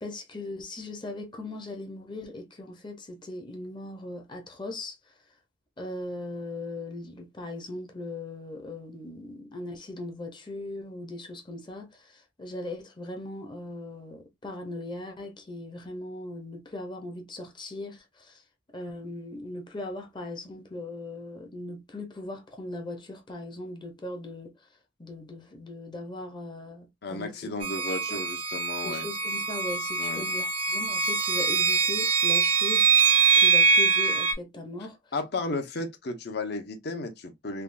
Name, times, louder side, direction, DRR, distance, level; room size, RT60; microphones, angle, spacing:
voice 1, 0.0-5.0 5.8-18.4 18.7-24.5 25.0-27.3 27.9-28.2 28.8-32.9 33.4-35.0, left 2 dB, 25° left, 0.7 m, -39 dB
voice 2, 27.0-29.1 30.0-30.2 35.1-37.6, left 2 dB, 55° left, 0.7 m, -34 dB
sound 1, 27.6-34.3, right 5 dB, 30° right, 0.4 m, -23 dB
3.5 x 2.3 x 2.5 m
head